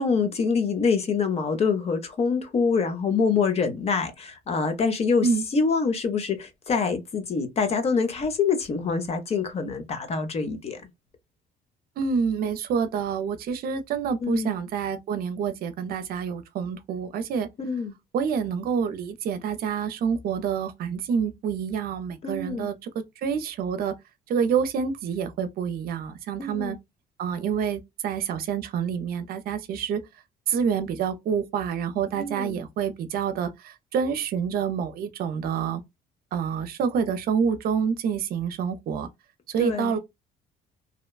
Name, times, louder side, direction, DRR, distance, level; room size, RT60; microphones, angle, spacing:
voice 1, 0.0-5.3 5.5-10.8 14.2-14.5 17.6-17.9 22.2-22.7 26.4-26.8 32.2-32.6 39.6-40.0, left 5 dB, 40° left, 0.7 m, -25 dB
voice 2, 12.0-17.5 18.1-23.9 24.3-26.8 27.2-30.0 30.5-35.8 36.3-39.1 39.5-40.0, right 6 dB, 65° right, 0.6 m, -27 dB
2.8 x 2.1 x 2.3 m
cardioid pair, 110°, 17 cm